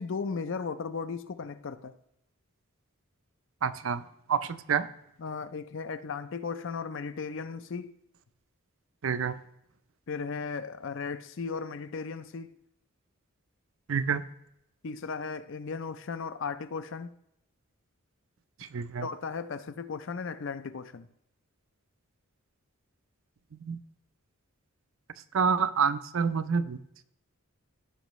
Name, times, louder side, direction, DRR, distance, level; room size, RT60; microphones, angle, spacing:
voice 1, 0.0-1.9 5.2-7.9 10.1-12.6 14.8-17.1 19.0-21.1, left 5 dB, 60° left, 0.5 m, -36 dB
voice 2, 3.6-4.0 4.3-4.9 9.0-9.4 13.9-14.2 18.7-19.1 23.6-23.8 25.3-26.8, right 6 dB, 65° right, 0.5 m, -27 dB
15.5 x 5.5 x 3.1 m
head